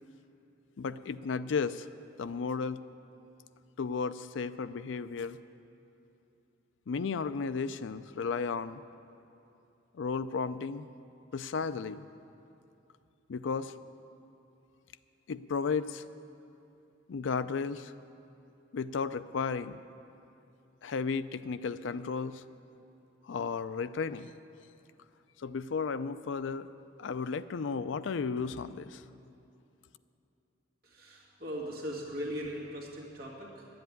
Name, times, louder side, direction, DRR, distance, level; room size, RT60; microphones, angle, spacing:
voice 1, 0.8-1.9 2.2-2.8 3.8-5.4 6.9-8.8 10.0-10.9 11.3-12.1 13.3-13.7 15.3-16.0 17.1-17.9 18.7-19.8 20.8-22.4 23.3-24.3 25.4-26.7 27.0-29.0, left 5 dB, 80° left, 14 dB, 0.4 m, -34 dB
voice 2, 30.8-33.7, equal, 50° right, -3 dB, 2.0 m, -39 dB
11.5 x 7.9 x 9.2 m, 2.8 s
head